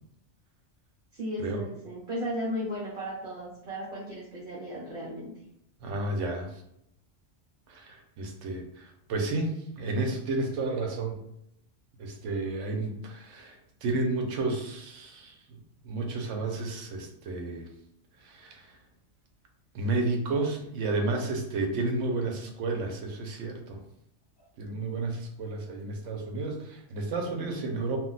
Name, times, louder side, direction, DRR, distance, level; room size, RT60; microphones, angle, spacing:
voice 1, 1.1-5.3 26.1-26.2, equal, 55° right, -4 dB, 0.8 m, -35 dB
voice 2, 5.8-6.6 7.7-11.1 12.0-15.3 15.8-17.7 18.2-18.8 19.7-23.8 24.6-28.0, right 2 dB, 85° right, 3 dB, 1.0 m, -31 dB
2.4 x 2.1 x 3.8 m, 0.77 s
omnidirectional pair, 1.2 m